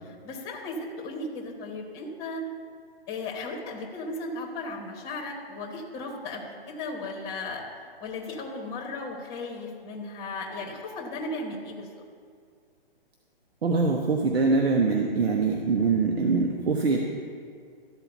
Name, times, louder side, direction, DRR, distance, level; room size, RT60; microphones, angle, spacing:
voice 1, 0.2-2.4 3.1-7.6 8.0-11.9, left 2 dB, 10° left, -1 dB, 1.0 m, -36 dB
voice 2, 13.6-17.0, right 4 dB, 85° right, 1 dB, 1.1 m, -23 dB
13.0 x 4.5 x 8.0 m, 2.2 s
hypercardioid pair, 160°, 30 cm